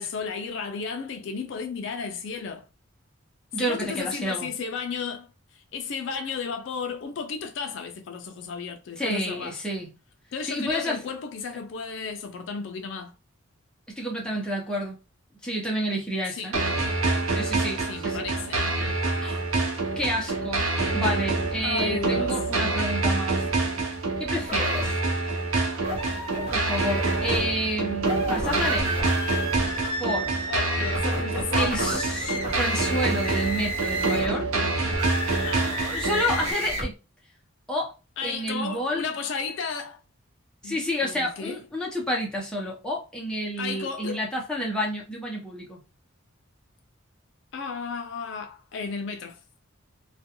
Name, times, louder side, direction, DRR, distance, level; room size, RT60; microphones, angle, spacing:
voice 1, 0.0-2.7 3.6-9.6 10.3-13.1 16.4-16.5 17.8-18.8 21.6-22.4 30.5-32.0 35.4-35.8 38.2-40.0 40.6-41.6 43.6-44.2 47.5-49.4, left 5 dB, 60° left, 0.3 m, -33 dB
voice 2, 3.5-4.5 9.0-9.9 10.4-11.0 13.9-15.0 15.4-16.6 17.3-18.2 19.2-19.4 20.0-20.6 20.9-23.4 24.2-24.9 26.3-29.1 30.0-30.3 31.5-34.5 35.7-36.9 37.7-37.9 38.2-39.1 40.6-45.8, equal, 5° left, 0.7 m, -30 dB
sound 1, 16.5-36.5, right 3 dB, 75° right, 0.7 m, -26 dB
sound 2, 24.4-24.9 25.8-27.4 28.0-34.4 34.9-36.9, equal, 30° right, 0.8 m, -32 dB
2.4 x 2.2 x 2.8 m
head